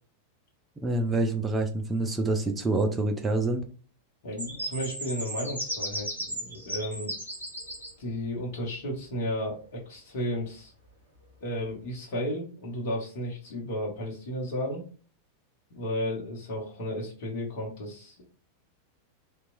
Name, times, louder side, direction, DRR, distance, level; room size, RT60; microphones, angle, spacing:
voice 1, 0.8-3.6, right 2 dB, 15° right, 4 dB, 0.4 m, -27 dB
voice 2, 4.2-7.1 8.0-10.7 11.4-14.8 15.7-18.2, equal, 50° left, -1 dB, 0.9 m, -33 dB
sound 1, 4.4-7.9, right 1 dB, 90° left, 1.0 m, -35 dB
2.9 x 2.2 x 2.5 m, 0.38 s
figure-of-eight pair, 90°, 0 cm